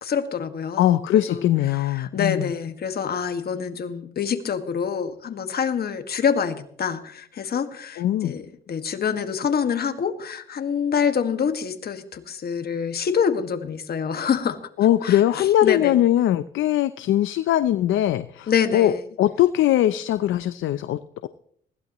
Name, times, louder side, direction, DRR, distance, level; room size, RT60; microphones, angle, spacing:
voice 1, 0.0-14.6 15.0-16.0 18.5-19.0, left 7 dB, 50° left, 8 dB, 1.8 m, -26 dB
voice 2, 0.8-2.5 8.0-8.3 14.8-21.3, left 12 dB, 80° left, 14 dB, 0.6 m, -21 dB
20.5 x 16.0 x 3.1 m, 0.63 s
cardioid pair, 90°, 20 cm